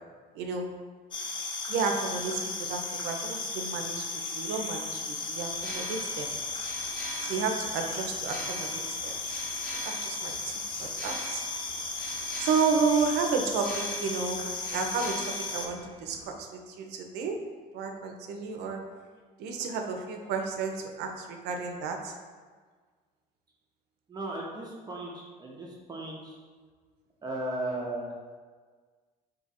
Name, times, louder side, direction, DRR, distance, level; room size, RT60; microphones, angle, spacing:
voice 1, 0.3-0.7 1.7-4.0 4.3-6.3 7.2-9.1 9.8-10.5 10.8-11.4 12.4-14.4 14.7-17.4 17.7-18.8 19.4-22.1, right 5 dB, 85° right, 3 dB, 0.5 m, -31 dB
sound 1, 1.1-15.7, left 3 dB, 30° left, 0.4 m, -35 dB
sound 2, 5.5-16.3, right 1 dB, 60° left, 1.1 m, -43 dB
voice 2, 24.1-26.4 27.2-28.1, right 1 dB, 25° right, -2 dB, 0.5 m, -36 dB
2.7 x 2.5 x 4.0 m, 1.5 s
cardioid pair, 110°, 17 cm